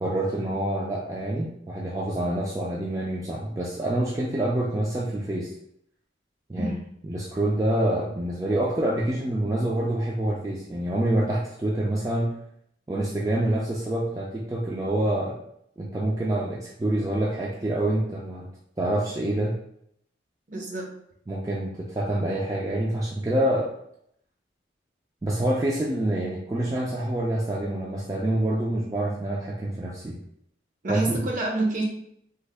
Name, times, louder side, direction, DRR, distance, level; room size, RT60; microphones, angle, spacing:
voice 1, 0.0-5.5 6.5-6.7 7.0-12.3 12.9-15.4 15.8-18.5 18.8-19.6 21.3-23.7 25.2-30.2 30.9-31.2, right 1 dB, 20° right, -4 dB, 0.3 m, -26 dB
voice 2, 20.5-20.9 30.8-31.8, right 2 dB, 45° right, -1 dB, 0.7 m, -28 dB
3.3 x 2.1 x 3.3 m, 0.72 s
head